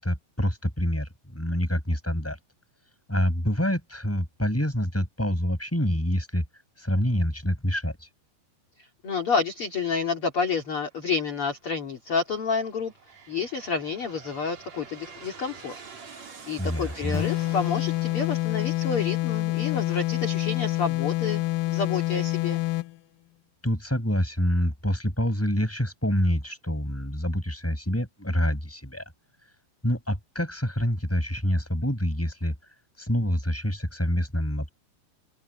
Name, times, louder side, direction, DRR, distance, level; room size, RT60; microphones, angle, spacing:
voice 1, 0.0-2.4 3.1-6.4 6.8-8.1 16.6-17.2 23.6-29.0 29.8-32.5 33.0-34.7, equal, 5° left, 6.2 m, -26 dB
voice 2, 9.0-12.9 13.3-15.8 16.5-21.4 21.7-22.6, left 5 dB, 35° left, 3.1 m, -29 dB
Aircraft, 10.8-11.3 12.0-19.6, right 5 dB, 45° right, 5.0 m, -47 dB
sound 1, 17.1-23.0, left 18 dB, 75° left, 2.2 m, -27 dB
open air
omnidirectional pair, 4.6 m